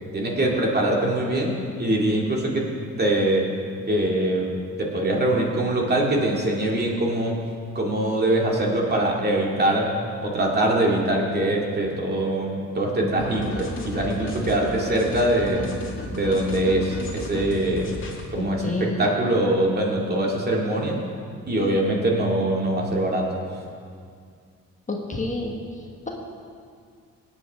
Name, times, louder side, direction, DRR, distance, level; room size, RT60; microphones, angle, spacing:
voice 1, 0.1-2.6 3.0-3.4 3.9-4.5 4.8-7.3 7.7-9.9 10.2-15.6 16.1-17.9 18.3-21.0 21.5-23.3, right 1 dB, 35° right, -2 dB, 2.4 m, -23 dB
sound 1, 13.2-18.3, left 2 dB, 40° left, 2.0 m, -34 dB
voice 2, 18.3-19.1 24.9-25.5, left 2 dB, 25° left, 0 dB, 1.4 m, -29 dB
17.5 x 8.9 x 3.6 m, 2.2 s
cardioid pair, 90°, 30 cm